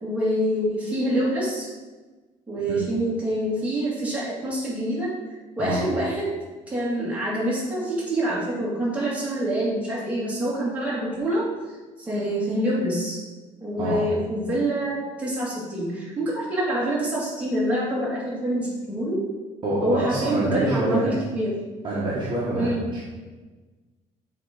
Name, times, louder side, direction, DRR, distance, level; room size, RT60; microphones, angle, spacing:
voice 1, 0.0-1.7 2.5-5.1 5.6-6.3 6.7-11.5 12.0-13.2 13.6-19.2 19.8-21.5 22.5-22.8, right 1 dB, 10° right, -7 dB, 2.2 m, -26 dB
voice 2, 19.6-21.1 21.8-23.0, right 1 dB, 35° right, -6 dB, 1.4 m, -26 dB
7.3 x 3.8 x 5.2 m, 1.3 s
cardioid pair, 155°, 13 cm